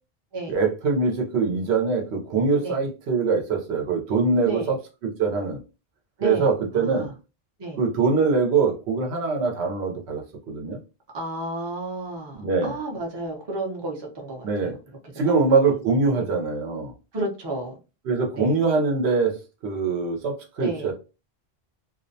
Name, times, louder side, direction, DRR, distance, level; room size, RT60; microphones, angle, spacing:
voice 1, 0.5-4.8 5.0-5.6 6.2-7.1 7.8-10.8 12.4-12.7 14.4-14.7 15.2-16.9 18.0-19.4 19.6-20.9, right 4 dB, 80° right, 1.0 m, -23 dB
voice 2, 6.7-7.1 7.6-7.8 11.1-14.8 15.3-15.5 16.1-16.2 17.1-17.8 18.3-18.6 20.6-20.9, right 1 dB, 30° right, 0.6 m, -32 dB
2.4 x 2.1 x 2.6 m
omnidirectional pair, 1.1 m